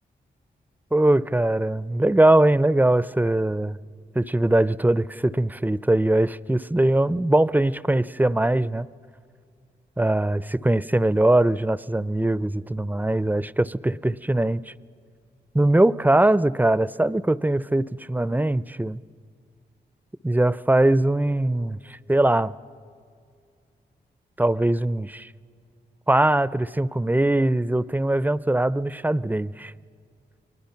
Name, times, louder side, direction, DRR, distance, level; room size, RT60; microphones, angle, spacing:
voice 1, 0.9-3.8 4.1-8.9 10.0-14.6 15.5-19.0 20.2-22.5 24.4-25.3 26.1-29.7, right 1 dB, 10° right, 0.5 m, -21 dB
29.5 x 22.5 x 5.8 m
cardioid pair, 50°, 18 cm